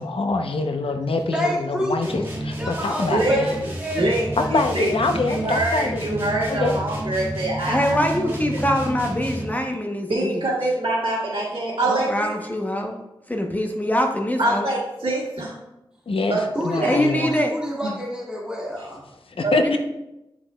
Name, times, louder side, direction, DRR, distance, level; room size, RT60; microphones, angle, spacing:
voice 1, 0.0-3.6 4.4-6.1 6.5-6.8 16.1-17.3 19.4-19.8, left 3 dB, 75° left, 6 dB, 0.6 m, -25 dB
voice 2, 1.3-2.2 2.6-4.2 12.4-12.5 16.5-19.0, equal, 10° right, -4 dB, 1.8 m, -29 dB
sound 1, 2.0-9.7, right 1 dB, 25° right, 1.7 m, -31 dB
voice 3, 3.1-3.4 3.9-4.9 5.3-8.0 8.2-8.3 10.1-12.3 14.4-15.5 16.3-16.4 16.8-16.9 19.4-19.6, right 2 dB, 85° right, -8 dB, 1.7 m, -24 dB
voice 4, 7.7-10.5 11.9-13.0 13.3-14.7 16.8-17.6 19.6-19.8, left 1 dB, 15° left, 2 dB, 0.8 m, -23 dB
8.4 x 6.0 x 2.2 m, 0.91 s
wide cardioid pair, 100°, 9 cm